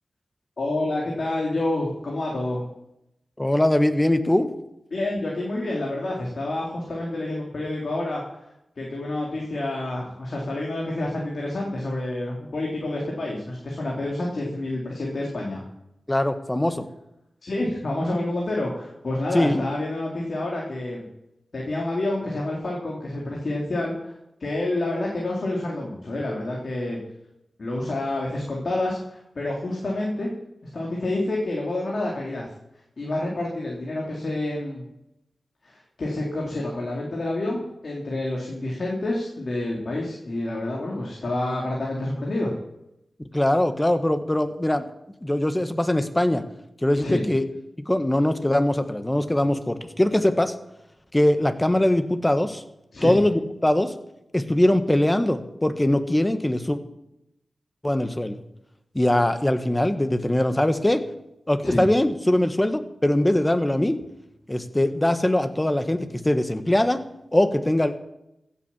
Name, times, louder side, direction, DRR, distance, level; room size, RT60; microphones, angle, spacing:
voice 1, 0.6-2.7 4.9-8.4 8.8-15.6 17.4-21.1 21.5-24.1 24.4-27.0 27.6-30.3 30.7-32.5 33.0-34.8 35.6-42.5 47.0-47.2 52.9-53.2 61.6-61.8, left 2 dB, 65° left, -2 dB, 3.6 m, -28 dB
voice 2, 3.4-4.5 16.1-16.8 19.3-19.6 43.3-44.9 45.2-46.4 46.8-47.5 47.8-50.5 51.1-52.6 53.0-53.9 54.3-56.8 57.8-58.4 58.9-61.1 61.5-64.0 64.5-67.0 67.3-67.9, left 1 dB, 20° left, 9 dB, 1.6 m, -22 dB
15.5 x 8.4 x 7.5 m, 0.84 s
cardioid pair, 45°, 0 cm